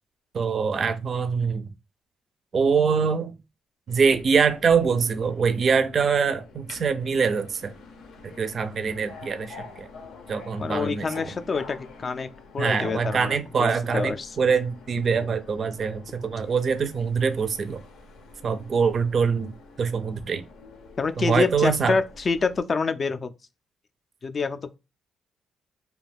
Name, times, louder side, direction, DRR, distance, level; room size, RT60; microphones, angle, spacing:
voice 1, 0.3-1.7 2.5-3.3 3.9-7.7 8.4-9.9 10.3-11.2 12.6-17.8 18.4-19.5 19.8-20.4 21.2-22.0, right 5 dB, 50° right, 0.4 m, -24 dB
Subway metro underground, 3.9-22.6, left 4 dB, 85° left, 0.6 m, -47 dB
voice 2, 10.6-14.4 21.0-23.3 24.2-24.8, left 4 dB, 40° left, 0.3 m, -27 dB
2.3 x 2.2 x 3.3 m
cardioid pair, 90°, 0 cm